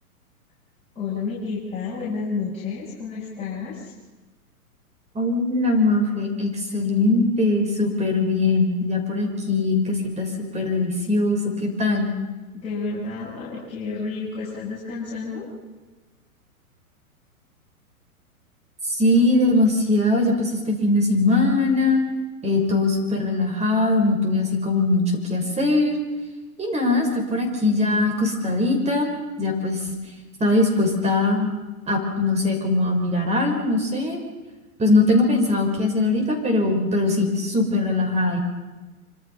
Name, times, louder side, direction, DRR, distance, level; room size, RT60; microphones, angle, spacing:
voice 1, 1.0-3.9 12.5-15.5, left 4 dB, 15° left, -8 dB, 7.6 m, -30 dB
voice 2, 5.1-12.1 18.8-22.0 22.4-26.0 26.6-29.1 29.4-30.0 30.4-31.5 31.9-34.2 34.8-38.4, left 2 dB, 15° right, 2 dB, 5.9 m, -21 dB
26.0 x 26.0 x 5.7 m, 1.2 s
hypercardioid pair, 125°, 44 cm